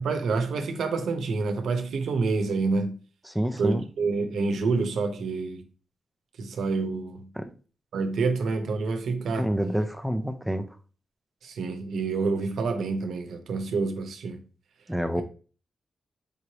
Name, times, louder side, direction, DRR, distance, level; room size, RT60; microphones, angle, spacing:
voice 1, 0.0-3.0 3.6-5.6 6.4-7.3 7.9-9.5 11.4-14.4, right 4 dB, 75° right, 0.8 m, -28 dB
voice 2, 3.3-3.8 7.4-7.5 9.4-10.7 14.9-15.2, equal, ahead, 0.4 m, -27 dB
5.1 x 3.2 x 2.8 m
wide cardioid pair, 170°, 0 cm